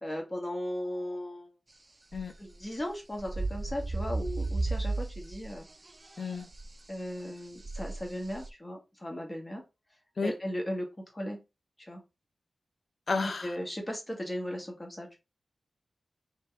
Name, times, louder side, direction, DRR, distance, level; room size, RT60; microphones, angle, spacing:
voice 1, 0.0-1.5 2.4-5.6 6.9-9.6 10.2-10.9 11.1-11.4 11.8-12.0 13.2-15.2, equal, 25° left, 1.5 m, -37 dB
sound 1, 2.1-2.9 3.1-5.6 5.9-6.7 7.6-8.5, right 3 dB, 35° right, 0.3 m, -34 dB
voice 2, 6.2-6.5 10.2-10.3 13.1-13.6, left 4 dB, 65° left, 0.6 m, -32 dB
3.6 x 2.8 x 3.3 m
cardioid pair, 60°, 0 cm